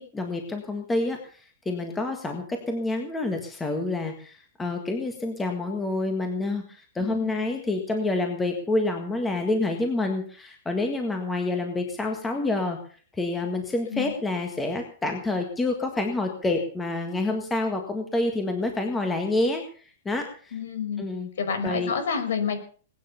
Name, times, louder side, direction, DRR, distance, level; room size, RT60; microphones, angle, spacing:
voice 1, 0.0-12.8 13.1-20.6 21.0-21.3 21.6-21.9, left 2 dB, 5° left, 4 dB, 1.8 m, -28 dB
voice 2, 7.0-7.5 13.9-14.1 20.5-21.0 21.4-22.6, left 6 dB, 75° left, 8 dB, 5.9 m, -29 dB
20.5 x 9.5 x 6.9 m, 0.44 s
supercardioid pair, 175°, 0 cm